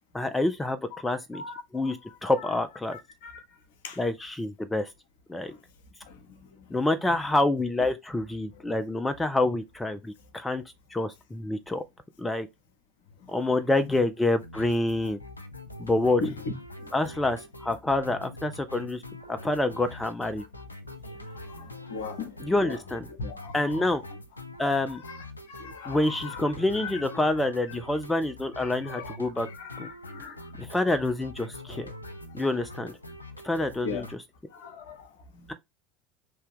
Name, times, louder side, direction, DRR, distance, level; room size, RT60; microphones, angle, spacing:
voice 1, 0.1-1.4 1.7-3.0 4.0-4.9 5.3-5.5 6.7-10.6 10.9-11.8 12.2-12.5 13.3-15.2 15.8-16.2 16.9-19.0 19.3-20.4 22.4-23.1 23.5-24.0 24.6-25.0 25.9-29.5 29.8-29.9 30.2-31.9 32.3-33.0 33.4-34.1, left 2 dB, 10° left, 0.4 m, -27 dB
voice 2, 0.9-2.5 2.9-3.4 3.8-4.0 5.5-5.6 6.0-6.7 7.1-7.2 8.5-8.6 13.2-14.0 16.2-16.5 16.8-16.9 18.0-18.2 21.3-22.8 23.1-24.2 24.9-27.2 28.5-30.5 31.7-31.9 33.8-34.1 34.5-35.5, left 4 dB, 60° left, 0.8 m, -40 dB
sound 1, 14.4-34.2, left 1 dB, 85° left, 0.4 m, -44 dB
3.3 x 2.8 x 3.3 m
figure-of-eight pair, 70°, 0 cm